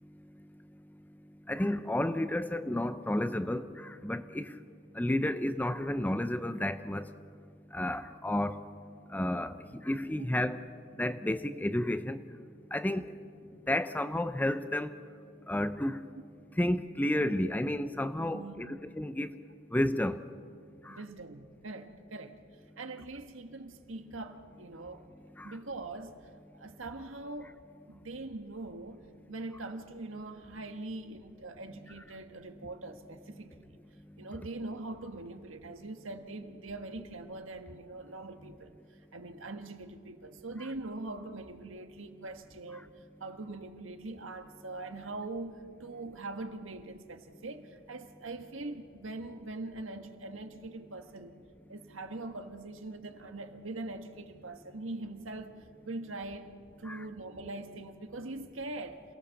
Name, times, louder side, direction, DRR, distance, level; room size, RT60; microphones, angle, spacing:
voice 1, 1.5-4.5 5.0-7.1 7.7-8.6 9.1-9.6 9.8-10.6 11.0-12.2 12.7-13.1 13.7-15.0 15.5-16.0 16.6-19.3 19.7-20.2 20.9-21.0 25.4-25.6 56.9-57.0, left 1 dB, 10° left, 11 dB, 0.5 m, -31 dB
voice 2, 18.3-18.8 20.9-22.4 22.8-25.1 25.4-26.2 26.5-27.6 27.9-33.8 34.2-51.4 51.7-56.5 56.8-59.0, right 2 dB, 75° right, 7 dB, 1.5 m, -42 dB
27.5 x 18.0 x 7.1 m, 2.3 s
head